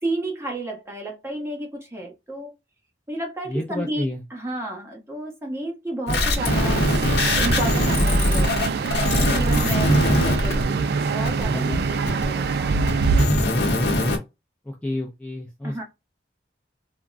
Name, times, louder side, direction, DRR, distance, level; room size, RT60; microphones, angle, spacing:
voice 1, 0.0-2.5 3.1-4.0 4.3-6.9 7.2-8.5 9.1-11.6 11.9-12.9 15.6-15.8, right 1 dB, 15° right, 0.9 m, -32 dB
voice 2, 3.5-4.2 11.5-11.8 14.6-15.8, left 1 dB, 10° left, 0.4 m, -29 dB
sound 1, 6.1-10.6 11.2-11.4 12.1-12.2 12.9-14.2, left 1 dB, 65° left, 0.8 m, -21 dB
sound 2, 6.4-13.3, right 4 dB, 60° right, 0.3 m, -24 dB
3.5 x 2.1 x 2.4 m
head